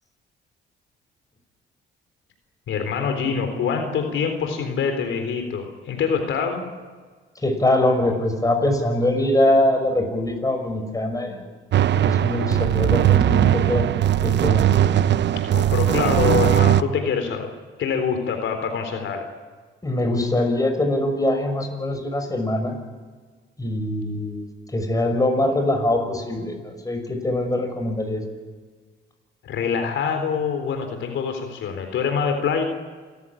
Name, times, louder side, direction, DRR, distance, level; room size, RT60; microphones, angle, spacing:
voice 1, 2.7-6.6 15.5-17.5 17.8-19.3 29.4-32.6, left 6 dB, 75° left, 6 dB, 3.8 m, -25 dB
voice 2, 7.4-11.4 11.9-13.9 14.2-14.6 19.8-22.8 23.6-24.4 24.7-28.2, left 1 dB, 15° left, 4 dB, 6.0 m, -23 dB
sound 1, 11.7-16.8, right 11 dB, 65° right, 0.9 m, -19 dB
28.0 x 15.0 x 10.0 m, 1.5 s
cardioid pair, 90°, 20 cm